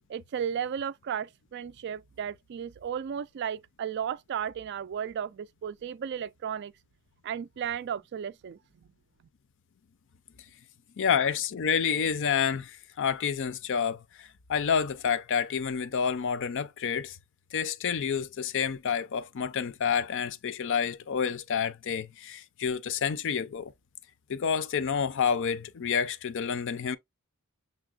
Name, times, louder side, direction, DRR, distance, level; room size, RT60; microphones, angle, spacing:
voice 1, 0.1-6.7 7.2-8.6, right 8 dB, 50° right, 0.3 m, -34 dB
voice 2, 11.0-17.2 17.5-23.7 24.3-27.0, left 7 dB, 55° left, 0.5 m, -29 dB
6.7 x 2.9 x 2.4 m
head